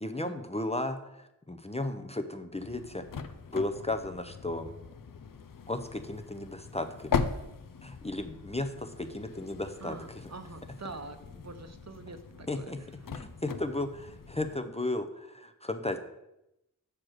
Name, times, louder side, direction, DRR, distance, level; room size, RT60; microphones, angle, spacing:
voice 1, 0.0-3.0 3.5-4.7 5.7-7.2 7.8-10.2 12.5-12.8 13.1-16.0, left 2 dB, 20° left, 7 dB, 0.6 m, -35 dB
sound 1, 2.6-14.6, left 5 dB, 80° left, 0.5 m, -39 dB
voice 2, 9.0-9.5 9.8-13.1, right 4 dB, 55° right, 8 dB, 0.7 m, -46 dB
6.4 x 4.5 x 6.3 m, 0.89 s
wide cardioid pair, 50°, 33 cm